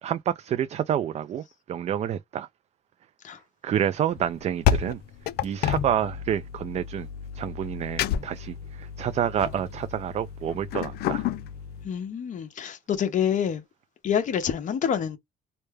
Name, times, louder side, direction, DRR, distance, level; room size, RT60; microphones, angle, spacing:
voice 1, 0.0-1.4 1.7-2.5 3.6-5.0 5.4-7.1 7.4-11.2, right 10 dB, 40° right, 0.4 m, -28 dB
sound 1, 4.2-11.9, left 9 dB, 70° left, 0.5 m, -30 dB
voice 2, 11.8-13.6 14.0-15.2, left 8 dB, 50° left, 1.0 m, -27 dB
3.2 x 2.1 x 3.3 m
cardioid pair, 110°, 17 cm